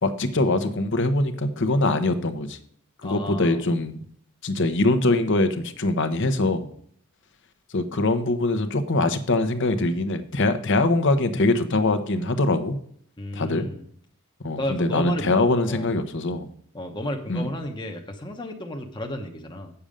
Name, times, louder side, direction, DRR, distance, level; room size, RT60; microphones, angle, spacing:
voice 1, 0.0-2.6 3.0-4.0 4.4-6.7 7.7-12.8 13.3-13.7 14.4-16.5 17.3-17.5, left 2 dB, 55° left, 10 dB, 1.0 m, -23 dB
voice 2, 3.0-3.6 13.2-13.8 14.6-15.9 16.7-19.7, left 1 dB, 20° left, 3 dB, 0.9 m, -33 dB
8.8 x 7.0 x 5.1 m, 0.62 s
head